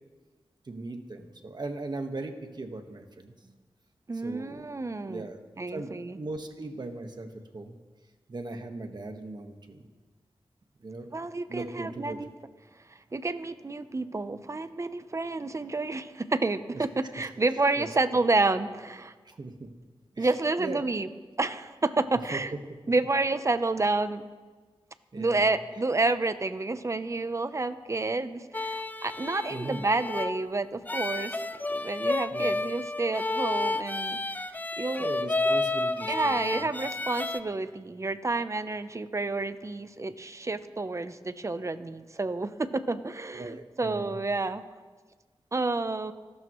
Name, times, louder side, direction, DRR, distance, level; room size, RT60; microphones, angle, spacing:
voice 1, 0.6-3.6 4.2-4.7 5.0-5.4 5.7-7.8 8.3-9.9 10.8-11.1 11.5-12.3 16.7-16.8 17.2-17.3 17.8-18.2 19.2-19.7 20.1-20.8 22.3-22.4 25.1-25.5 29.5-29.8 32.3-32.5 35.0-36.7 43.3-44.2, right 2 dB, 50° right, 5 dB, 1.5 m, -39 dB
voice 2, 4.1-5.3 5.6-6.2 11.1-12.3 12.9-19.1 20.2-21.1 21.4-22.5 22.9-24.2 25.2-31.4 31.7-34.2 34.8-35.1 36.1-44.6 45.5-46.1, right 3 dB, 35° right, 11 dB, 0.8 m, -29 dB
sound 1, 28.5-37.4, left 2 dB, 20° left, 0.5 m, -31 dB
27.5 x 12.5 x 3.1 m, 1.4 s
wide cardioid pair, 90°, 9 cm